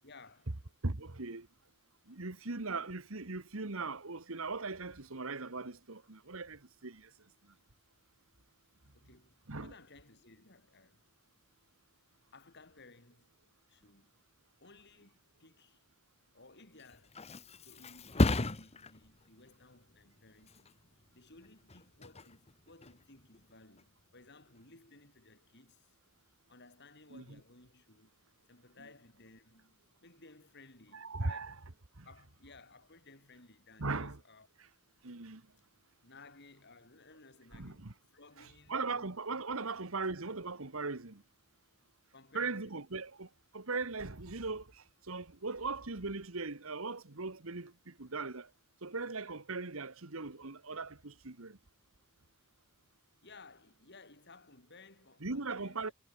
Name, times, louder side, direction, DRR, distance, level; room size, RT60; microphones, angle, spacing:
voice 1, 0.0-0.5 8.9-11.0 12.3-13.3 13.7-14.1 14.6-15.8 16.3-17.2 17.6-20.8 21.1-25.9 26.5-31.7 32.0-34.5 36.0-39.2 39.6-39.7 42.1-43.1 53.2-55.9, left 3 dB, 50° left, 7.6 m, -59 dB
voice 2, 0.8-1.5 2.1-7.1 7.4-7.5 9.5-9.7 27.1-27.4 30.9-31.6 32.0-32.1 33.8-34.2 35.0-35.4 37.5-37.9 38.4-41.2 42.3-43.3 43.5-48.5 48.8-51.6 55.2-55.9, right 3 dB, 65° right, 1.6 m, -39 dB
Thump thud, 16.6-24.1 24.5-24.9, left 2 dB, 30° left, 1.1 m, -37 dB
head